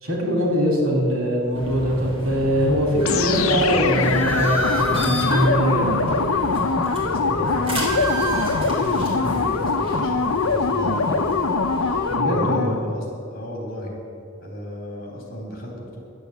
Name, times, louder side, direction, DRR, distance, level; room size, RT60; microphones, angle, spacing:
voice 1, 0.0-6.1 12.1-12.8, equal, 75° right, -1 dB, 3.6 m, -22 dB
sound 1, 1.5-12.1, right 1 dB, 25° right, 3.7 m, -31 dB
sound 2, 3.0-12.9, left 4 dB, 80° left, 0.8 m, -22 dB
sound 3, 4.6-4.8 5.1-5.3 5.6-5.9 6.2-6.4 6.8-7.0 7.4-7.6 7.9-8.2 8.5-8.8 9.0-9.3, left 1 dB, 20° left, 2.9 m, -42 dB
voice 2, 6.9-11.3 12.2-14.0 14.4-16.0, equal, 45° left, -1 dB, 3.6 m, -34 dB
11.5 x 8.4 x 8.1 m, 2.5 s
head